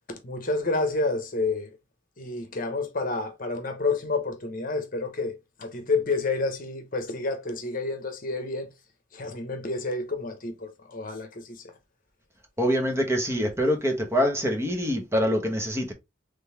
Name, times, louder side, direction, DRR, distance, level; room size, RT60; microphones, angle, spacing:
voice 1, 0.1-1.8 2.2-8.7 9.1-11.7, left 3 dB, 50° left, 0.9 m, -29 dB
voice 2, 12.6-15.9, equal, 15° right, 1.1 m, -25 dB
3.9 x 3.4 x 3.3 m
head